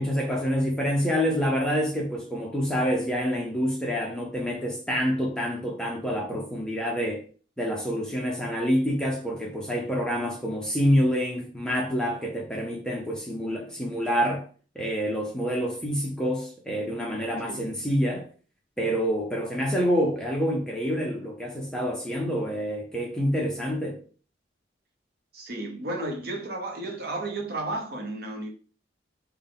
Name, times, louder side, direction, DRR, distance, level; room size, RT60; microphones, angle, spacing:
voice 1, 0.0-7.2 7.6-14.4 14.7-18.3 18.8-24.0, equal, 5° left, 0.6 m, -27 dB
voice 2, 25.3-28.5, right 2 dB, 55° right, 0.8 m, -33 dB
3.6 x 2.2 x 3.8 m
head